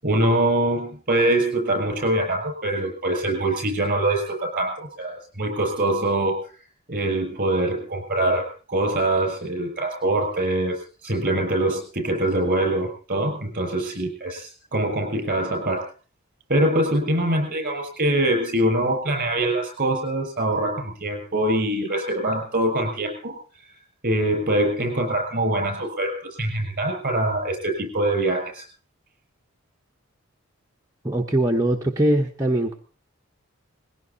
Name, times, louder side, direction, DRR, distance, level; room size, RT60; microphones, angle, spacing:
voice 1, 0.0-6.4 6.9-15.9 16.5-23.4 24.0-28.6, right 1 dB, 40° right, 3 dB, 6.2 m, -24 dB
voice 2, 31.0-32.7, right 1 dB, 15° right, -1 dB, 1.1 m, -21 dB
20.5 x 16.5 x 4.2 m, 0.37 s
head